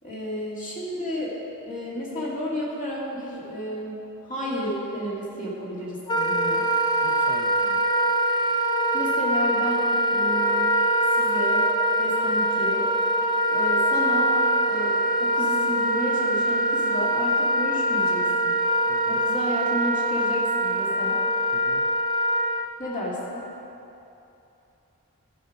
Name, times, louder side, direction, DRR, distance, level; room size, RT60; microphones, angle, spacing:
voice 1, 0.0-1.3 1.7-6.6 8.9-10.7 11.1-11.7 12.0-12.9 13.5-14.4 14.7-18.5 19.1-21.2 22.8-23.4, equal, 35° left, -7 dB, 2.2 m, -32 dB
Wind instrument woodwind instrument, 6.1-22.7, equal, 20° left, 0.4 m, -23 dB
voice 2, 7.0-7.8 18.9-19.2 21.5-21.8, right 2 dB, 35° right, 1 dB, 0.7 m, -43 dB
14.0 x 5.1 x 5.2 m, 2.9 s
head